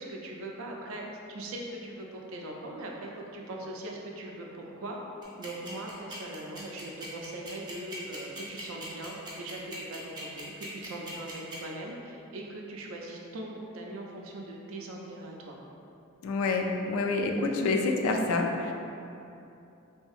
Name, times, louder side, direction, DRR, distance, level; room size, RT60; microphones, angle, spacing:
voice 1, 0.0-5.0 5.4-15.6, right 1 dB, 70° right, 0 dB, 0.4 m, -40 dB
sound 1, 5.2-11.6, right 1 dB, 20° right, 0.5 m, -41 dB
voice 2, 16.2-18.7, left 3 dB, 85° left, 4 dB, 0.3 m, -27 dB
2.7 x 2.6 x 2.3 m, 2.7 s
head